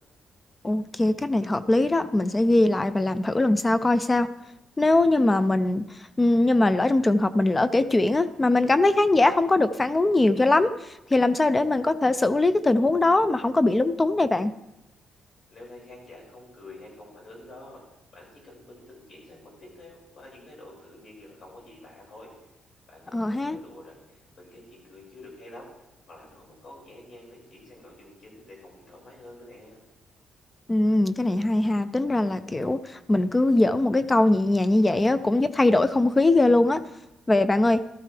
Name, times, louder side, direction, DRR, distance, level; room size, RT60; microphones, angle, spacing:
voice 1, 0.6-4.3 4.8-14.5 23.1-23.6 30.7-36.8 37.3-37.8, left 2 dB, 15° left, 13 dB, 0.4 m, -21 dB
voice 2, 15.5-17.8 18.1-22.3 22.9-25.7 26.1-29.8, left 2 dB, 50° left, -2 dB, 5.4 m, -48 dB
14.5 x 13.0 x 3.3 m, 0.92 s
cardioid pair, 135°, 0 cm